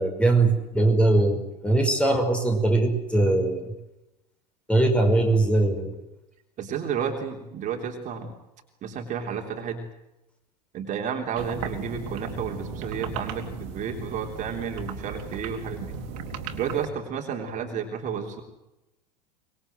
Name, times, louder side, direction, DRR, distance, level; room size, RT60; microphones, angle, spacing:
voice 1, 0.0-3.7 4.7-5.9, right 2 dB, 5° left, 5 dB, 5.5 m, -21 dB
voice 2, 6.6-8.3 8.8-9.8 10.7-16.0 16.5-18.4, right 7 dB, 35° right, 2 dB, 3.6 m, -31 dB
sound 1, 11.4-16.9, right 5 dB, 55° right, 3.3 m, -36 dB
25.0 x 21.0 x 7.9 m, 0.92 s
figure-of-eight pair, 80°, 21 cm